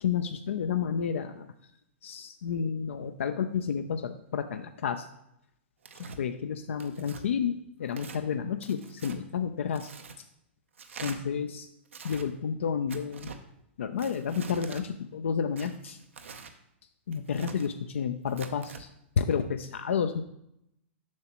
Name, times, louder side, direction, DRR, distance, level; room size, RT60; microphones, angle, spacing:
voice 1, 0.0-1.5 2.0-5.1 6.0-9.9 11.0-11.7 12.0-13.3 13.8-16.0 17.1-18.9 19.2-20.2, left 7 dB, 80° left, 8 dB, 0.4 m, -31 dB
Tearing, 5.8-6.2 6.8-7.2 7.9-8.2 8.6-9.2 9.7-10.2 10.8-11.2 11.9-12.3 12.9-13.4 14.0-14.8 15.6-16.5 17.1-17.7 18.3-18.8, right 5 dB, 85° right, 0.6 m, -44 dB
7.4 x 5.8 x 2.9 m, 0.79 s
hypercardioid pair, 120°, 7 cm